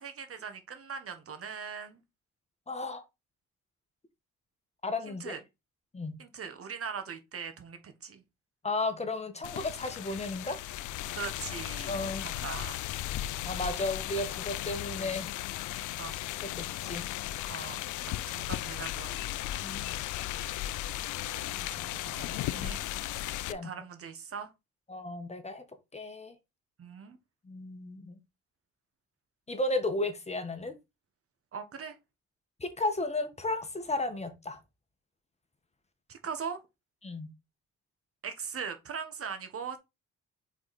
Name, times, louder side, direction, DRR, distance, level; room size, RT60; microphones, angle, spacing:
voice 1, 0.0-2.0 5.1-5.4 6.2-8.2 11.1-12.8 16.0-16.2 17.5-19.2 21.2-22.9 23.6-24.5 26.8-27.2 31.5-32.0 36.1-36.6 38.2-39.8, right 6 dB, 50° right, 1.2 m, -40 dB
voice 2, 2.7-3.0 4.8-5.3 5.9-6.1 8.6-10.6 11.9-12.3 13.4-15.3 16.5-17.0 19.6-19.9 22.5-22.8 23.4-23.7 24.9-25.6 25.9-26.3 27.5-28.2 29.5-30.8 32.6-34.6 37.0-37.3, left 2 dB, 20° left, 1.3 m, -34 dB
sound 1, 9.4-23.5, left 14 dB, 80° left, 0.5 m, -36 dB
4.9 x 4.7 x 4.2 m
cardioid pair, 90°, 30 cm